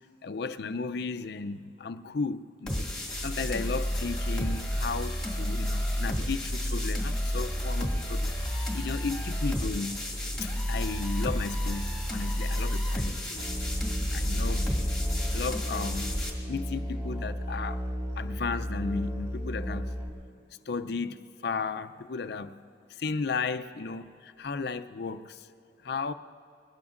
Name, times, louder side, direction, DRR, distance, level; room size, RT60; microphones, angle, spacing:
voice 1, 0.2-2.9 3.2-10.0 10.4-13.5 14.1-14.8 15.2-16.2 16.5-17.8 18.2-19.9 20.7-22.6 22.9-25.5 25.8-26.1, left 4 dB, 60° left, 0.5 m, -35 dB
sound 1, 2.7-16.3, equal, 5° left, 2.0 m, -30 dB
Musical instrument, 13.4-20.1, equal, 15° right, 2.1 m, -34 dB
22.0 x 19.0 x 2.5 m
head